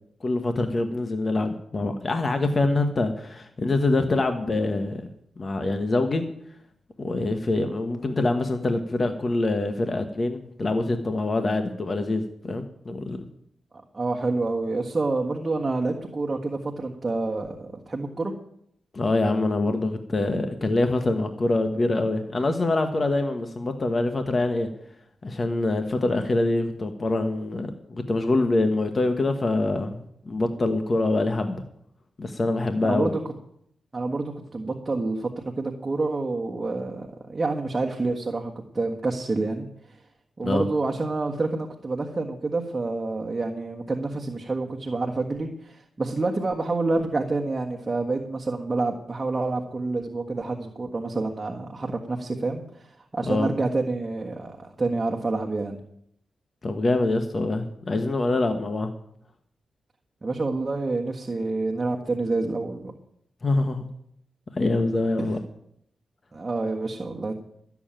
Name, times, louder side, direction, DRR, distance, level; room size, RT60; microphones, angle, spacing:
voice 1, 0.2-5.0 5.4-6.3 7.0-13.3 18.9-24.7 25.2-31.6 32.2-33.1 40.4-40.7 53.2-53.5 56.6-58.9 63.4-63.9 64.6-65.4, left 2 dB, 40° left, 6 dB, 1.2 m, -25 dB
voice 2, 13.9-18.3 32.8-33.2 33.9-35.3 35.6-40.0 40.4-55.8 60.2-62.8 65.2-65.3 66.3-67.4, right 3 dB, 30° right, 1 dB, 1.5 m, -28 dB
13.0 x 7.2 x 8.9 m, 0.71 s
cardioid pair, 85°, 0 cm